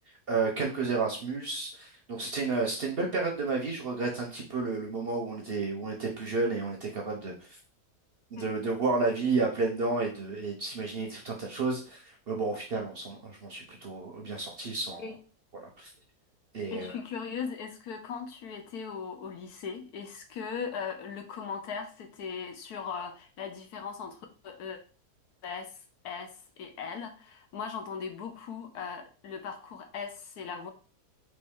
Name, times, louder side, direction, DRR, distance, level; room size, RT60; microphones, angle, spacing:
voice 1, 0.3-7.6 8.3-15.0 15.6-15.9 16.5-16.9, right 3 dB, 50° right, 1 dB, 0.8 m, -31 dB
voice 2, 16.7-24.8 25.4-25.8 26.0-30.7, left 6 dB, 75° left, 5 dB, 1.3 m, -39 dB
4.3 x 3.1 x 3.6 m, 0.36 s
omnidirectional pair, 1.7 m